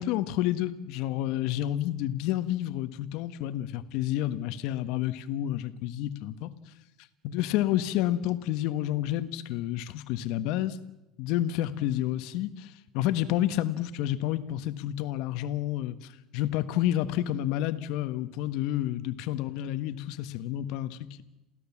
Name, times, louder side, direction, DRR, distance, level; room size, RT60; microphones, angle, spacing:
voice 1, 0.0-6.5 7.2-10.8 11.2-15.9 16.3-21.2, left 13 dB, 75° left, 12 dB, 1.5 m, -29 dB
28.5 x 16.0 x 7.4 m, 0.97 s
supercardioid pair, 115°, 0 cm